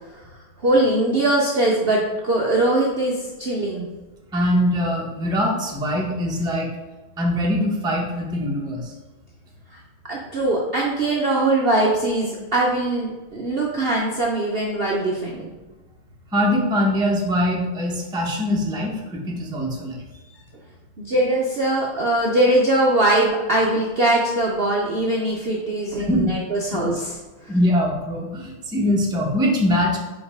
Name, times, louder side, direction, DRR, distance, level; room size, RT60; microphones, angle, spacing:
voice 1, 0.6-3.9 9.7-9.8 10.1-15.5 20.1-20.2 21.0-27.1 27.4-27.5, right 1 dB, 85° right, -2 dB, 0.5 m, -21 dB
voice 2, 4.3-6.7 7.2-8.9 16.3-20.0 26.0-26.3 27.5-30.0, equal, 5° right, -2 dB, 0.4 m, -22 dB
5.3 x 3.9 x 4.9 m, 1.2 s
omnidirectional pair, 2.1 m